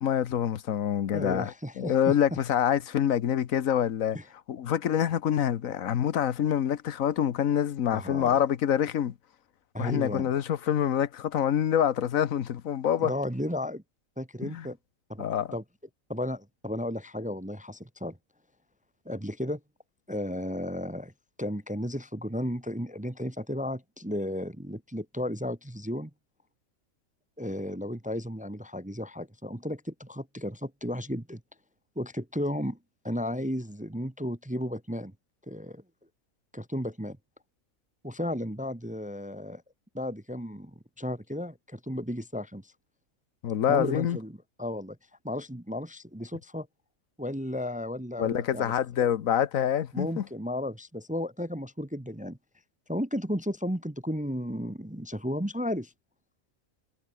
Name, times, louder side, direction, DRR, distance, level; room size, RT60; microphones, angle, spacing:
voice 1, 0.0-4.2 4.5-9.1 9.8-13.1 14.4-14.7 15.2-15.5 43.4-44.2 48.2-50.2, left 9 dB, 85° left, 1.4 m, -26 dB
voice 2, 1.1-2.1 4.1-4.2 7.9-8.4 9.7-10.3 13.0-13.8 14.2-14.8 15.1-15.3 15.5-15.6 16.1-18.2 19.0-19.6 20.1-21.1 21.4-26.1 27.4-31.4 32.0-32.8 33.0-35.1 35.5-35.8 36.5-37.2 38.0-39.6 39.9-40.7 41.0-42.7 43.7-45.0 45.2-46.7 47.2-48.7 49.9-52.4 52.9-55.9, left 1 dB, 5° right, 0.7 m, -34 dB
omnidirectional pair, 1.4 m